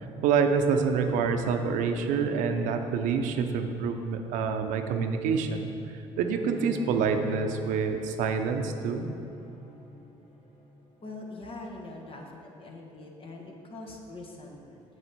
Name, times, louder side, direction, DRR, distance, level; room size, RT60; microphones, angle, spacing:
voice 1, 0.2-5.7 6.2-9.1, right 5 dB, 75° right, 6 dB, 0.7 m, -27 dB
Bowed string instrument, 6.2-11.5, left 2 dB, 60° left, 1.5 m, -45 dB
voice 2, 11.0-14.8, left 2 dB, 45° left, 0 dB, 1.5 m, -43 dB
7.8 x 7.5 x 4.3 m, 2.6 s
supercardioid pair, 70°, 13 cm